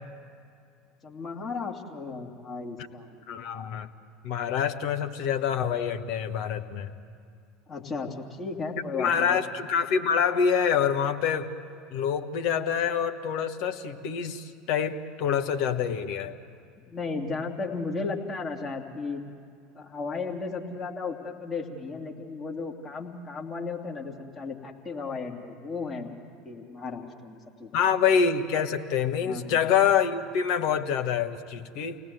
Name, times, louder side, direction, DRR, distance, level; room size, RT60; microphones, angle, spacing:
voice 1, 1.0-3.2 7.7-9.4 16.9-19.2 19.7-26.1 26.4-27.7 29.2-29.6, left 4 dB, 30° left, 0 dB, 2.8 m, -35 dB
voice 2, 3.3-3.9 4.2-6.9 8.9-11.5 11.9-16.3 27.7-32.0, left 7 dB, 55° left, 6 dB, 1.2 m, -26 dB
29.0 x 18.5 x 7.9 m, 2.3 s
figure-of-eight pair, 75°, 0 cm